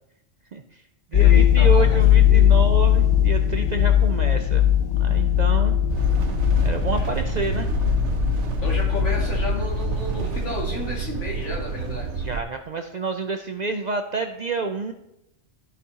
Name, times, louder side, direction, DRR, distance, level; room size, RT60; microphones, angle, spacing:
voice 1, 0.5-0.8 1.1-4.6 5.0-5.8 6.6-7.7 12.2-14.9, right 4 dB, 55° right, 6 dB, 0.5 m, -28 dB
voice 2, 1.1-2.0 2.3-2.5 6.9-7.1 8.6-12.3, left 2 dB, 80° left, -3 dB, 2.4 m, -32 dB
sound 1, 1.1-10.2 10.4-10.6, left 11 dB, 55° left, 0.3 m, -19 dB
sound 2, 5.9-12.4, right 5 dB, 75° right, 1.1 m, -28 dB
14.0 x 5.0 x 2.9 m, 0.84 s
omnidirectional pair, 1.2 m